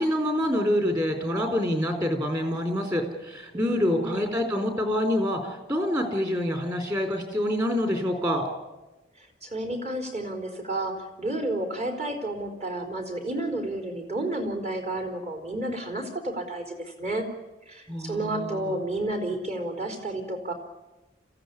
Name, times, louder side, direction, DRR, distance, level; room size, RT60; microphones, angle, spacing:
voice 1, 0.0-5.4 5.7-8.4 17.9-18.7, equal, 20° right, 5 dB, 3.9 m, -26 dB
voice 2, 3.5-4.4 9.2-17.3 17.7-20.5, right 1 dB, 35° right, 3 dB, 4.1 m, -31 dB
26.5 x 15.5 x 9.8 m, 1.1 s
head